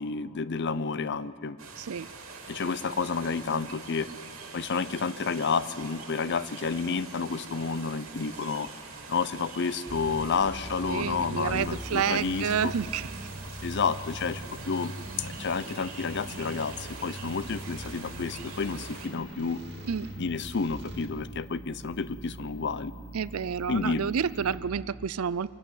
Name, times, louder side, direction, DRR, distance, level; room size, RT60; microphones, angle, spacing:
voice 1, 0.0-1.6 2.5-4.1 4.5-8.7 9.1-12.7 13.6-19.6 20.2-22.9 23.7-24.1, left 5 dB, 55° left, 16 dB, 0.6 m, -30 dB
sound 1, 1.6-19.1, right 4 dB, 75° right, 3.2 m, -44 dB
voice 2, 1.8-2.1 10.9-13.1 19.9-20.1 23.1-25.5, right 7 dB, 90° right, 17 dB, 0.5 m, -29 dB
sound 2, 9.9-21.1, right 1 dB, 55° right, 2.3 m, -41 dB
sound 3, 11.4-24.6, equal, 5° left, 7.6 m, -50 dB
24.5 x 14.5 x 9.4 m, 2.3 s
head